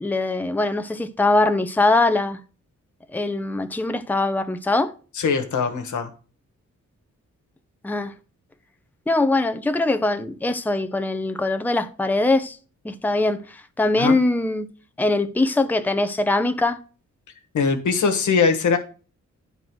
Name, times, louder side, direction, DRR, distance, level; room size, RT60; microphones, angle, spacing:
voice 1, 0.0-2.4 3.1-4.9 7.8-8.1 9.1-12.6 12.8-14.7 15.0-16.8, left 2 dB, 5° left, 0.7 m, -22 dB
voice 2, 5.1-6.1 14.0-14.2 17.5-18.8, left 5 dB, 80° left, 1.4 m, -21 dB
9.4 x 3.9 x 6.2 m
cardioid pair, 75°, 30 cm